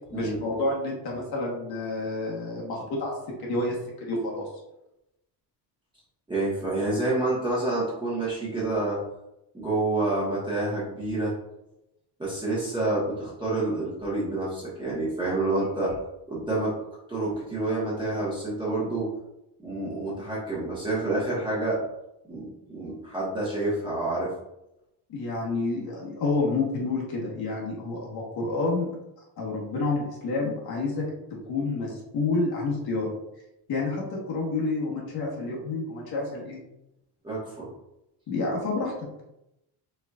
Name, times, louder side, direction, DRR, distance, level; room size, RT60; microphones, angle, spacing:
voice 1, 0.1-3.1 3.4-4.5 25.1-28.9 29.4-31.1 31.5-33.1 33.7-36.6 38.3-38.9, left 3 dB, 60° left, -3 dB, 1.2 m, -29 dB
voice 2, 6.3-9.0 9.5-11.3 12.2-15.9 16.3-16.7 17.1-19.1 19.6-21.8 22.2-24.3 37.2-37.7, right 2 dB, 10° right, -9 dB, 1.1 m, -28 dB
4.4 x 3.9 x 2.3 m, 0.88 s
cardioid pair, 165°, 41 cm